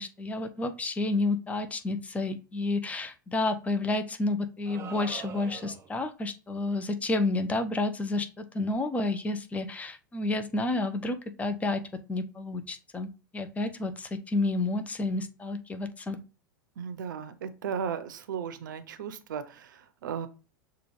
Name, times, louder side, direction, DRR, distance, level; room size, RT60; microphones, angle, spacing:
voice 1, 0.0-13.1 13.3-16.2, left 2 dB, 15° left, 9 dB, 0.5 m, -30 dB
sound 1, 4.7-6.0, right 7 dB, 25° right, 0.9 m, -43 dB
voice 2, 16.8-20.3, right 7 dB, 65° right, 11 dB, 0.6 m, -36 dB
6.7 x 2.4 x 3.1 m, 0.33 s
figure-of-eight pair, 90°, 11 cm